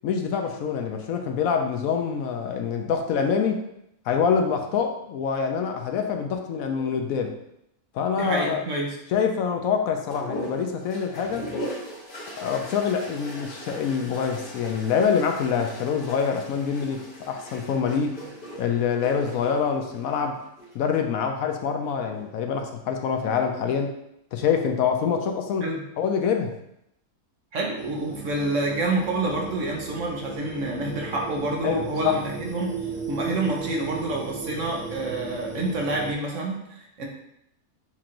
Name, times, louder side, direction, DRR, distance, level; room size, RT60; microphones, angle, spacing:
voice 1, 0.0-3.7 4.1-7.3 7.9-8.6 9.1-11.5 12.4-18.2 18.6-20.4 20.7-23.9 24.3-25.7 26.0-26.6 31.6-32.2, left 6 dB, 75° left, 5 dB, 1.0 m, -25 dB
voice 2, 8.2-9.0 25.6-25.8 27.5-32.7 33.1-37.1, right 2 dB, 60° right, -1 dB, 1.2 m, -28 dB
sound 1, 10.1-20.8 21.9-22.5, equal, 40° left, 1.3 m, -39 dB
sound 2, 27.8-36.1, right 4 dB, 35° right, 0.7 m, -36 dB
7.2 x 2.5 x 2.9 m, 0.78 s
omnidirectional pair, 1.5 m